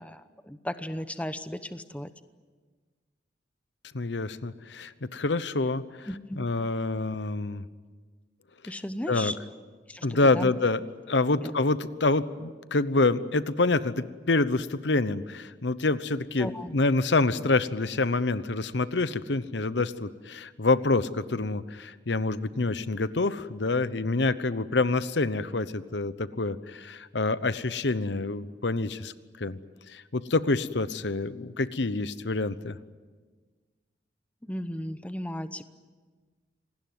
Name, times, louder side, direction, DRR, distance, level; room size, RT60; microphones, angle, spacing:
voice 1, 0.0-2.1 6.1-6.4 8.7-9.4 9.9-10.5 11.4-11.5 16.4-16.7 34.4-35.6, equal, 10° left, 11 dB, 0.9 m, -35 dB
voice 2, 3.9-6.1 6.4-7.6 9.1-9.3 10.0-10.8 11.1-29.6 29.9-32.8, left 3 dB, 75° left, 15 dB, 0.9 m, -27 dB
27.0 x 19.0 x 9.5 m, 1.4 s
head